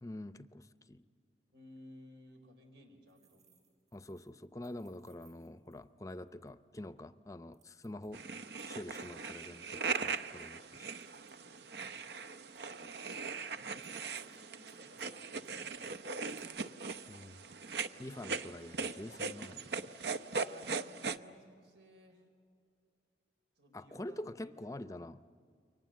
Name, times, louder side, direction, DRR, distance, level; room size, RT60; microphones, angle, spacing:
voice 1, 0.0-1.0 3.9-8.3 8.6-10.9 17.1-17.4 18.0-19.7 23.7-25.2, left 1 dB, 20° left, 12 dB, 0.6 m, -46 dB
voice 2, 1.5-3.6 11.4-11.5 12.7-13.0 13.5-16.7 20.3-22.2 23.6-24.5, equal, 90° right, 5 dB, 3.8 m, -58 dB
sound 1, 3.1-6.5 6.8-6.9 7.5-9.5 9.9-11.9 12.6-12.9 13.8-14.4 14.7-15.5 15.8-15.9 16.2-16.4, right 9 dB, 45° right, 5.0 m, -71 dB
sound 2, 8.1-21.2, right 4 dB, 70° right, 0.7 m, -40 dB
29.0 x 23.5 x 7.6 m, 2.2 s
head